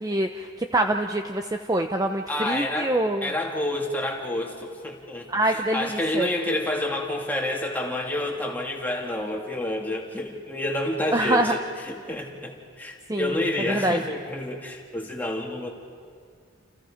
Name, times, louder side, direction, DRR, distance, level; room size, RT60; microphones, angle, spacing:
voice 1, 0.0-3.3 5.3-6.3 11.1-11.5 13.1-13.4 13.7-14.0, right 1 dB, 15° right, 5 dB, 0.7 m, -25 dB
voice 2, 2.3-15.7, left 1 dB, 10° left, -1 dB, 2.7 m, -29 dB
29.0 x 29.0 x 5.2 m, 2.1 s
head